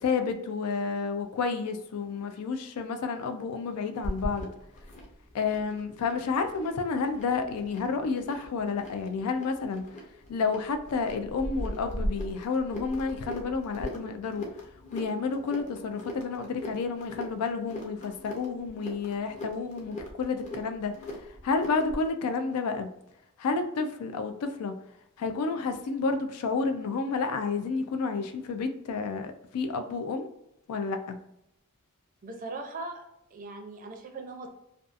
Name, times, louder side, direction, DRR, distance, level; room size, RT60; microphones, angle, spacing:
voice 1, 0.0-4.5 5.3-9.9 10.3-14.5 14.9-22.9 23.4-24.7 25.2-30.3 30.7-31.2, left 4 dB, 90° left, 7 dB, 0.4 m, -30 dB
sound 1, 4.0-22.1, left 1 dB, 35° left, 0.6 m, -40 dB
voice 2, 32.2-34.5, right 3 dB, 40° right, 4 dB, 0.4 m, -40 dB
2.6 x 2.3 x 2.4 m, 0.81 s
head